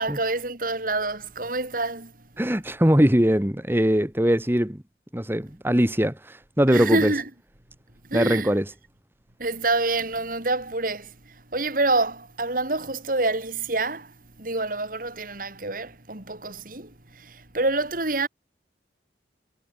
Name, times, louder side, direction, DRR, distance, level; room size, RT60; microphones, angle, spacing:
voice 1, 0.0-2.3 6.7-7.3 8.1-8.5 9.4-18.3, right 2 dB, 50° right, 3.7 m, -27 dB
voice 2, 2.4-4.8 5.1-7.1 8.1-8.7, equal, 15° right, 1.8 m, -21 dB
head